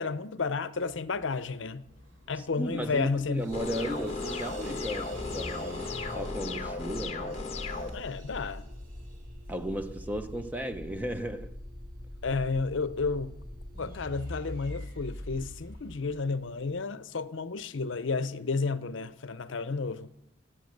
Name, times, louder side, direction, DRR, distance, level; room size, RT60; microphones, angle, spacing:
voice 1, 0.0-1.8 2.3-3.5 7.9-8.7 12.2-13.4 13.8-20.1, left 4 dB, 70° left, 0.6 m, -32 dB
sound 1, 0.8-16.8, left 1 dB, 45° right, 6.3 m, -44 dB
sound 2, 1.3-1.5 2.0-2.3 2.8-10.9, right 2 dB, 85° right, 2.4 m, -51 dB
voice 2, 2.4-7.4 9.5-11.5, equal, 10° right, 0.6 m, -35 dB
sound 3, 3.5-7.9, left 3 dB, 30° left, 1.2 m, -36 dB
18.5 x 7.8 x 6.5 m
head